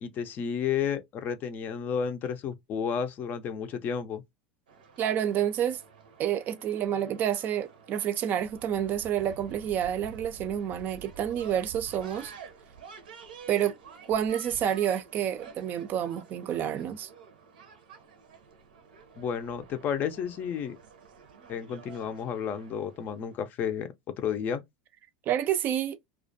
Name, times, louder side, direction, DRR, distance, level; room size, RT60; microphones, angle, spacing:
voice 1, 0.0-4.2 19.2-20.8 21.5-24.6, left 7 dB, 40° left, 0.4 m, -32 dB
sound 1, 4.7-23.4, right 6 dB, 85° right, 0.7 m, -49 dB
voice 2, 5.0-5.8 6.2-12.3 13.5-13.7 14.1-17.1 25.3-26.0, right 10 dB, 40° right, 0.4 m, -29 dB
2.3 x 2.1 x 2.5 m
hypercardioid pair, 95°, 5 cm